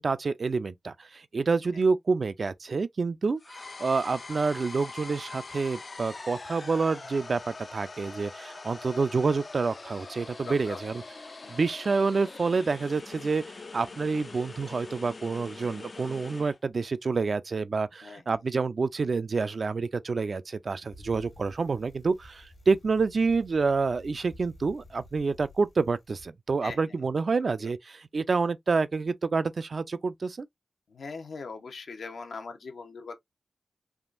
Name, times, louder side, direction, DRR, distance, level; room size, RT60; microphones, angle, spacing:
voice 1, 0.0-11.0 11.5-13.4 13.7-30.5, right 4 dB, 60° right, 0.3 m, -28 dB
sound 1, 3.4-16.6, left 3 dB, 50° left, 0.3 m, -43 dB
voice 2, 10.4-10.8 11.3-11.6 18.0-18.4 26.6-26.9 30.9-33.2, left 4 dB, 85° left, 0.7 m, -41 dB
Bicycle, 20.9-26.3, left 1 dB, 70° left, 1.2 m, -52 dB
3.5 x 2.5 x 2.4 m
cardioid pair, 60°, 0 cm